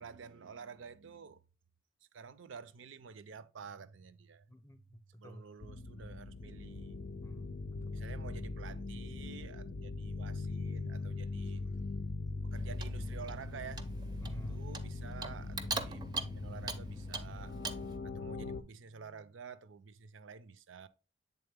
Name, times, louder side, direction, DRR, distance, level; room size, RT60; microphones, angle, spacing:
voice 1, 0.0-1.4 2.1-4.5 5.2-7.0 7.9-11.7 12.4-13.8 14.3-17.6 18.0-20.9, right 6 dB, 75° right, 0.5 m, -50 dB
voice 2, 4.5-5.4 7.2-8.0 14.2-14.6, equal, 15° left, 0.7 m, -50 dB
sound 1, 5.6-18.6, left 3 dB, 55° left, 0.4 m, -41 dB
Clock, 12.5-18.0, right 4 dB, 20° right, 0.5 m, -43 dB
7.9 x 3.6 x 3.5 m
head